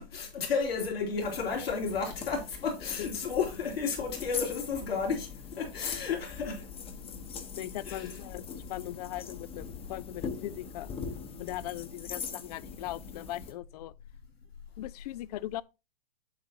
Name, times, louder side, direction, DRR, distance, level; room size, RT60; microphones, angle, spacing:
voice 1, 0.0-6.6 7.8-8.3, left 5 dB, 75° left, 3.1 m, -32 dB
sound 1, 1.2-13.5, left 6 dB, 20° left, 1.0 m, -42 dB
voice 2, 7.6-11.0 11.4-13.9 14.8-15.6, left 15 dB, 40° left, 0.4 m, -39 dB
7.9 x 7.8 x 2.8 m
hypercardioid pair, 115°, 30 cm